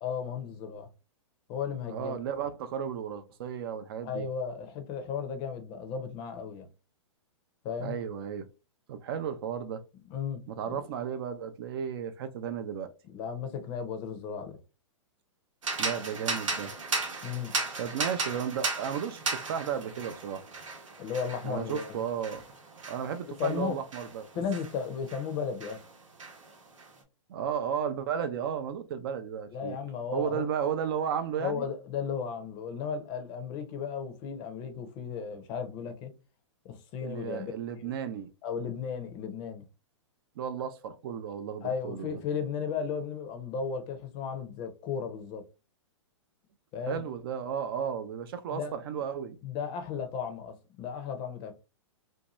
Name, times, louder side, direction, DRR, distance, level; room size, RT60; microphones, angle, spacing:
voice 1, 0.0-0.9 1.5-2.1 4.0-6.7 7.6-8.0 10.1-10.8 13.0-14.6 17.2-17.5 21.0-22.0 23.4-23.8 24.3-25.8 29.5-30.5 31.4-36.1 36.6-37.5 37.8-37.9 38.4-39.7 41.6-45.4 46.7-47.0 48.5-48.7 49.4-51.5, left 6 dB, 30° left, 0.5 m, -35 dB
voice 2, 1.9-4.3 7.8-8.5 8.9-9.8 10.5-12.9 15.8-16.7 17.8-20.4 21.4-22.4 22.9-24.3 27.3-29.8 30.1-31.7 37.0-38.3 40.4-42.2 46.9-49.4, right 8 dB, 50° right, 0.4 m, -34 dB
sound 1, 15.6-25.3 25.6-26.9, right 3 dB, 90° right, 0.9 m, -36 dB
2.6 x 2.2 x 2.9 m
hypercardioid pair, 140°, 16 cm